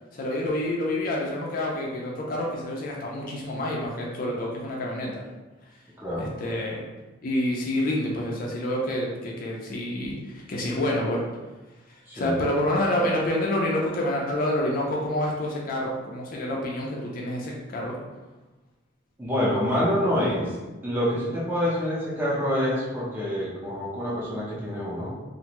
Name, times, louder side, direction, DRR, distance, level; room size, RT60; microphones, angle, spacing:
voice 1, 0.1-5.2 6.2-6.8 7.2-11.2 12.1-18.0, left 1 dB, 50° left, -2 dB, 0.4 m, -28 dB
voice 2, 6.0-6.3 12.1-12.3 19.2-20.5 20.8-25.1, equal, 10° right, -7 dB, 0.7 m, -26 dB
2.5 x 2.2 x 2.9 m, 1.2 s
head